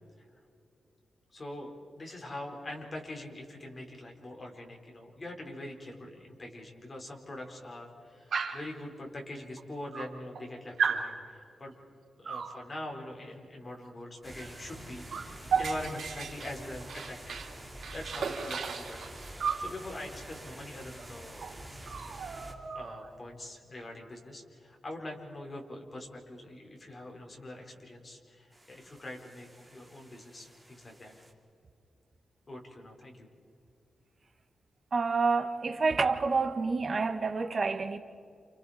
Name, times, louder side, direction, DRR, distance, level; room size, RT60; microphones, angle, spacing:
voice 1, 1.3-11.7 12.2-17.4 17.9-21.8 22.7-31.1 32.5-33.3, left 1 dB, 30° left, 4.5 m, -43 dB
Dog, 8.3-8.7 9.6-9.7 9.9-10.5 10.8-11.1 12.3-12.6 14.4-14.5 14.8-17.5 17.8-19.7 21.0-21.1 21.4-21.6 21.9-23.1, right 6 dB, 85° right, 3.5 m, -34 dB
sound 1, 14.2-22.7 28.5-31.3, right 1 dB, 10° right, 2.9 m, -48 dB
voice 2, 34.9-38.0, right 4 dB, 40° right, 1.7 m, -28 dB
30.0 x 29.0 x 4.3 m
wide cardioid pair, 125°, 0 cm